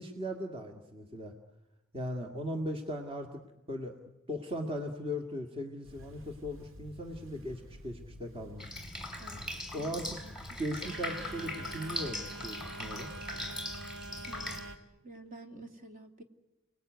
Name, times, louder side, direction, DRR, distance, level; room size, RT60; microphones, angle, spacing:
voice 1, 0.0-1.3 1.9-3.4 3.7-4.0 4.3-8.7 9.7-10.2 10.6-13.1, equal, 30° right, 3 dB, 1.9 m, -38 dB
Telephone, 5.9-14.8, right 1 dB, 75° right, 2.2 m, -47 dB
Drip, 8.6-14.6, left 1 dB, 5° right, 4.3 m, -40 dB
voice 2, 9.2-10.0 10.2-10.6 14.2-14.7 15.0-16.2, right 2 dB, 45° right, 5 dB, 2.5 m, -50 dB
30.0 x 19.5 x 9.4 m, 1.0 s
head